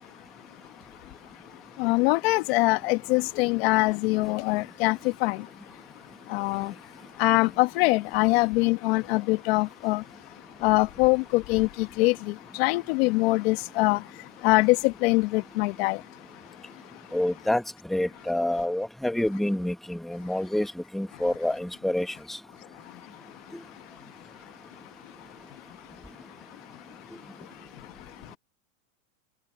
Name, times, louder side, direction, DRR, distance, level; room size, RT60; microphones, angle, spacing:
voice 1, 1.8-5.4 6.3-6.7 7.2-10.0 10.6-14.0 14.4-16.0, left 23 dB, 45° left, 1.2 m, -23 dB
voice 2, 17.1-17.6 17.9-22.4 23.5-23.6 27.1-27.2, left 1 dB, ahead, 1.3 m, -28 dB
supercardioid pair, 150°, 40 cm